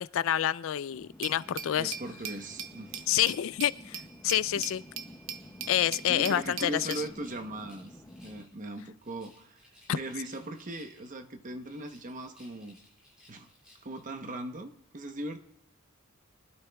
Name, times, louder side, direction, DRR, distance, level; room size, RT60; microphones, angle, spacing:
voice 1, 0.0-1.9 3.1-4.0 4.2-4.8 5.7-6.9, left 11 dB, 65° left, 18 dB, 0.3 m, -28 dB
sound 1, 0.9-8.5, left 1 dB, 10° left, 0.5 m, -51 dB
Glass, 1.2-7.1, right 8 dB, 65° right, 0.7 m, -41 dB
voice 2, 1.8-3.1 4.6-4.7 6.1-7.9 8.2-9.6 9.9-12.8 13.3-13.5 13.8-15.4, right 1 dB, 40° right, 7 dB, 0.9 m, -39 dB
Rattle, 6.8-8.5 9.0-11.3 11.6-14.1, left 1 dB, 5° right, 6.2 m, -60 dB
23.5 x 11.5 x 2.3 m, 0.77 s
head